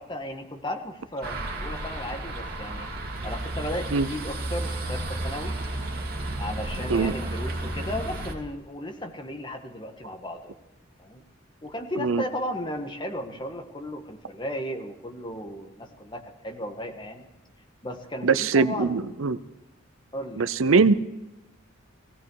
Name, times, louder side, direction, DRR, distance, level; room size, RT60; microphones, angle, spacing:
voice 1, 0.0-2.9 3.2-5.5 6.4-10.6 11.0-11.2 11.6-17.2 17.8-19.2 20.1-20.5, left 1 dB, 20° left, 4 dB, 1.6 m, -35 dB
sound 1, 1.2-8.3, right 1 dB, 45° right, 2.5 m, -32 dB
voice 2, 18.2-19.4 20.4-20.9, right 4 dB, 75° right, 13 dB, 0.7 m, -21 dB
17.0 x 17.0 x 4.8 m, 1.0 s
head